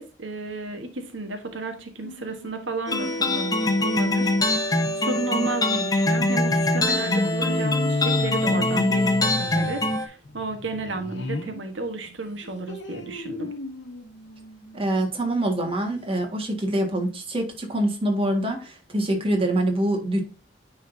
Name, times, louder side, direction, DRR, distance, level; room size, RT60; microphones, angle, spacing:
voice 1, 0.0-13.5, right 2 dB, 85° right, 6 dB, 1.2 m, -33 dB
sound 1, 2.0-11.6 12.1-15.1 15.6-15.7 16.0-16.1, left 2 dB, 70° left, 1.1 m, -34 dB
sound 2, 2.9-10.1, left 2 dB, 20° left, 0.9 m, -23 dB
voice 2, 14.7-20.2, right 1 dB, 30° right, 2 dB, 1.8 m, -25 dB
9.7 x 3.8 x 2.7 m, 0.35 s
head